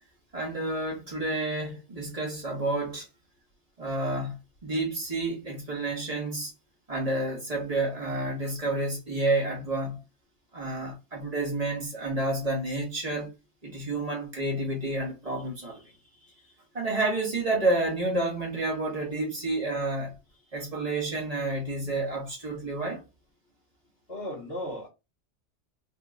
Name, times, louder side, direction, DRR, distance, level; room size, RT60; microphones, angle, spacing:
voice 1, 0.3-3.1 3.8-4.4 4.6-6.5 6.9-10.0 10.5-13.3 13.6-15.8 16.7-20.1 20.5-23.0, right 2 dB, 30° right, 1.6 m, -30 dB
voice 2, 24.1-24.9, left 1 dB, 60° left, 2.1 m, -36 dB
4.4 x 2.9 x 2.5 m
omnidirectional pair, 1.2 m